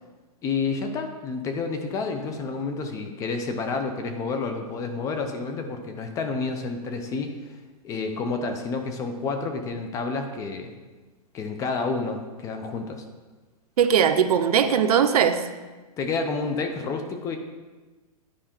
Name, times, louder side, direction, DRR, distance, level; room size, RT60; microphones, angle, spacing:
voice 1, 0.4-7.4 7.8-10.7 11.3-13.0 16.0-17.4, left 4 dB, 15° left, 6 dB, 0.5 m, -29 dB
voice 2, 13.8-15.4, right 8 dB, 75° right, 9 dB, 0.7 m, -19 dB
10.0 x 4.8 x 4.4 m, 1.3 s
hypercardioid pair, 155°, 20 cm